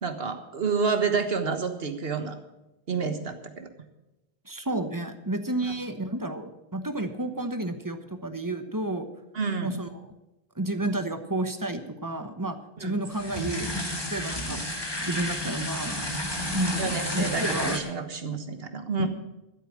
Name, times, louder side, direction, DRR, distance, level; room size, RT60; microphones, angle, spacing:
voice 1, 0.0-2.3 2.9-3.7 5.7-5.8 9.3-9.8 12.8-13.0 16.8-19.1, right 5 dB, 70° right, 7 dB, 1.7 m, -29 dB
voice 2, 4.4-9.1 9.6-9.9 10.6-14.8 15.0-16.1 16.5-17.8 19.0-19.1, right 1 dB, 20° right, 8 dB, 1.0 m, -31 dB
sound 1, 13.1-17.8, left 1 dB, 25° left, 2.0 m, -31 dB
13.5 x 8.4 x 8.5 m, 0.99 s
omnidirectional pair, 1.0 m